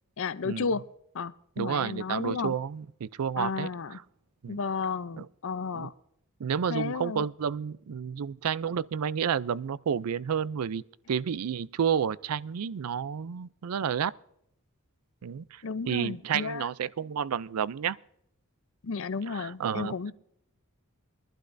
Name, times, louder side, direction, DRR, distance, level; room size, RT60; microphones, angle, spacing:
voice 1, 0.2-0.8 1.1-2.6 3.4-4.0 4.5-5.9 6.7-7.3 15.6-16.7 18.8-20.1, left 5 dB, 65° left, 0.6 m, -33 dB
voice 2, 1.6-4.0 4.4-4.6 5.2-5.3 5.7-5.9 6.4-14.1 15.2-18.0 19.3-19.9, right 7 dB, 85° right, 0.4 m, -31 dB
22.5 x 11.5 x 2.6 m
head